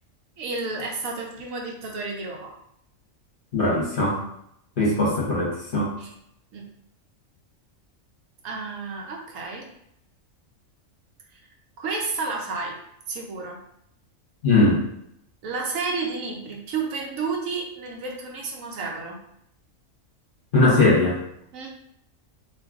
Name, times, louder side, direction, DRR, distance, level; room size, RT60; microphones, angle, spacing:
voice 1, 0.4-2.5 6.0-6.1 6.5-6.6 8.4-9.7 11.3-11.4 11.8-12.8 13.1-13.6 15.4-19.2 21.5-21.7, right 4 dB, 85° right, 0 dB, 1.1 m, -31 dB
voice 2, 3.5-4.2 4.8-5.9 14.4-14.8 20.5-21.2, left 2 dB, 50° left, -3 dB, 0.8 m, -20 dB
2.6 x 2.3 x 3.5 m, 0.73 s
omnidirectional pair, 1.4 m